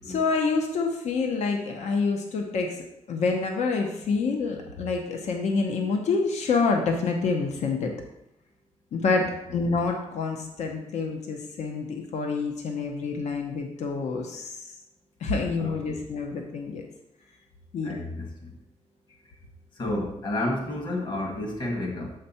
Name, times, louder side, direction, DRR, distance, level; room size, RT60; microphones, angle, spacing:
voice 1, 0.1-2.8 3.1-7.9 8.9-14.7 15.2-16.8 17.7-17.9, left 4 dB, 70° left, 3 dB, 0.9 m, -27 dB
voice 2, 15.6-16.0 17.8-18.5 19.8-22.1, left 1 dB, 40° left, 0 dB, 1.7 m, -31 dB
8.0 x 5.0 x 4.3 m, 0.85 s
wide cardioid pair, 150°, 12 cm